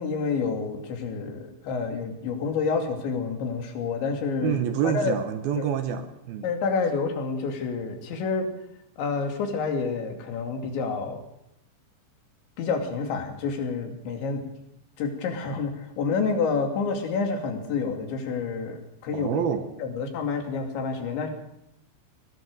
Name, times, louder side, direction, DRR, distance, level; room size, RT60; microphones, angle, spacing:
voice 1, 0.0-5.1 5.6-5.7 6.4-8.5 9.0-11.2 12.6-14.5 15.0-19.4 19.8-21.3, left 5 dB, 80° left, 4 dB, 4.9 m, -28 dB
voice 2, 4.4-6.5 19.1-19.7, right 8 dB, 70° right, 9 dB, 2.7 m, -27 dB
21.0 x 18.5 x 6.7 m, 0.79 s
omnidirectional pair, 5.2 m